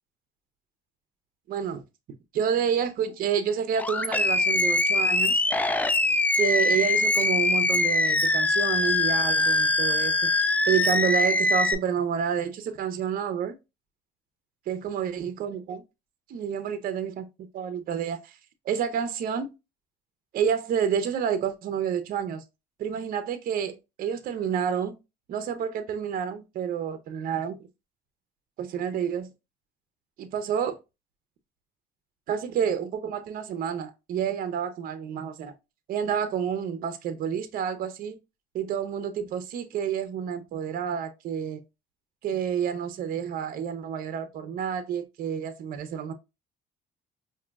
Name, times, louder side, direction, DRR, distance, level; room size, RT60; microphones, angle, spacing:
voice 1, 1.5-1.8 2.3-5.4 6.4-10.3 10.7-13.6 14.7-15.8 16.3-17.3 17.5-18.3 18.6-19.5 20.3-22.4 22.8-25.0 25.3-27.6 28.6-29.3 30.2-30.8 32.3-35.5 35.9-38.2 38.5-41.6 42.2-46.1, right 8 dB, 60° right, 0.6 m, -29 dB
Animal, 3.8-11.7, left 2 dB, 10° left, 0.3 m, -23 dB
4.9 x 2.6 x 2.3 m
cardioid pair, 110°, 17 cm